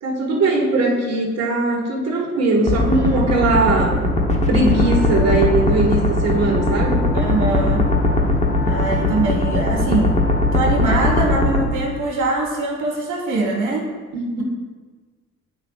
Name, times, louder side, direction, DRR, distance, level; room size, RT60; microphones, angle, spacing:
voice 1, 0.0-3.9 4.5-7.0 14.1-14.4, right 2 dB, 60° right, -1 dB, 1.7 m, -20 dB
sound 1, 2.7-11.7, left 2 dB, 25° left, 1.0 m, -19 dB
Wind instrument woodwind instrument, 4.7-12.2, left 4 dB, 45° left, 1.5 m, -32 dB
voice 2, 7.1-7.9 8.6-10.2 10.5-13.9, right 2 dB, 75° right, 0 dB, 1.8 m, -23 dB
9.8 x 5.1 x 2.4 m, 1.4 s
cardioid pair, 90°, 30 cm